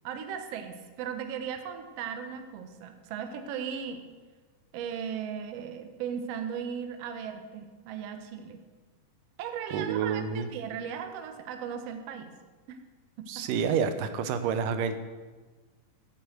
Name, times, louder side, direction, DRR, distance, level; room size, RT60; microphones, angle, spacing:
voice 1, 0.0-4.0 4.7-8.6 9.4-12.3 12.7-12.8 13.2-13.6, right 7 dB, 65° right, 6 dB, 1.7 m, -37 dB
voice 2, 9.7-10.5 13.3-15.0, right 6 dB, 85° right, 9 dB, 2.4 m, -29 dB
9.4 x 8.0 x 7.8 m, 1.4 s
omnidirectional pair, 3.8 m